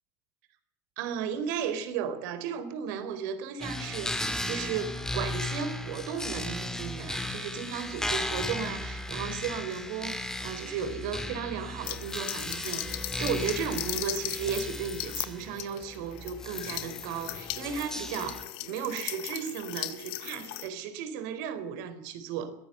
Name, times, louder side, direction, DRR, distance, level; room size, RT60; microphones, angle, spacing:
voice 1, 1.0-22.5, right 7 dB, 80° right, 11 dB, 4.2 m, -35 dB
sound 1, 3.6-18.4, left 1 dB, 5° left, 3.4 m, -36 dB
sound 2, 11.8-20.7, left 17 dB, 70° left, 1.9 m, -38 dB
22.0 x 16.5 x 7.9 m, 0.75 s
supercardioid pair, 110°, 10 cm